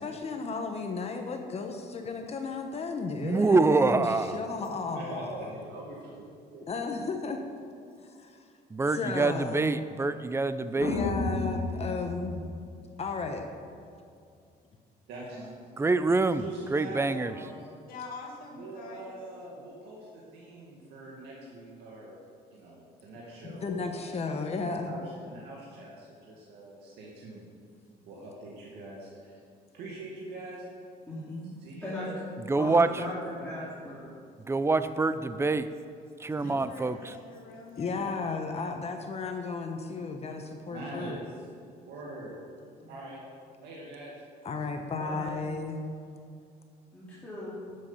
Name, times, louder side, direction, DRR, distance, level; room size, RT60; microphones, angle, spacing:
voice 1, 0.0-5.5 6.7-7.4 8.0-8.5 8.8-9.7 10.7-12.5 13.0-13.5 23.6-25.0 37.8-41.2 44.4-45.8, left 4 dB, 40° left, 4 dB, 1.1 m, -34 dB
voice 2, 3.2-4.4 8.7-10.9 15.8-16.4 16.7-17.3 32.5-32.9 34.5-35.7 36.2-37.1, right 3 dB, 15° right, 13 dB, 0.5 m, -25 dB
voice 3, 4.9-6.2 6.5-6.7 15.1-15.5 16.2-17.7 18.5-22.2 22.5-24.0 24.7-27.5 28.0-29.4 29.7-30.7 31.6-32.2 32.7-33.6 36.3-36.6 40.7-41.5 41.8-42.4 42.8-43.2 43.6-44.2, right 2 dB, 85° right, -4 dB, 2.1 m, -43 dB
sound 1, 10.8-13.1, left 3 dB, 85° left, 1.9 m, -33 dB
voice 4, 17.9-19.2 36.4-38.0, left 3 dB, 60° left, -1 dB, 2.1 m, -44 dB
voice 5, 31.0-31.5 31.8-32.1 32.6-34.1 42.8-42.9 45.0-45.5 46.9-47.6, left 1 dB, 10° left, -10 dB, 2.8 m, -38 dB
11.5 x 7.8 x 5.7 m, 2.4 s
cardioid pair, 110°, 17 cm